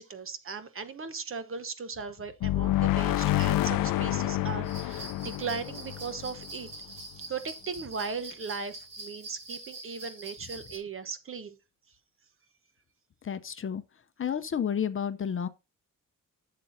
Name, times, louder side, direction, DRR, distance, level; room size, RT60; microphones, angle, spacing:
voice 1, 0.0-11.6, right 5 dB, 40° right, 1.0 m, -38 dB
sound 1, 2.4-7.0, left 15 dB, 90° left, 0.5 m, -28 dB
sound 2, 4.6-10.8, right 3 dB, 85° right, 5.7 m, -44 dB
voice 2, 13.2-13.8 14.2-15.5, left 8 dB, 40° left, 0.6 m, -31 dB
11.5 x 7.6 x 2.6 m
wide cardioid pair, 140°, 32 cm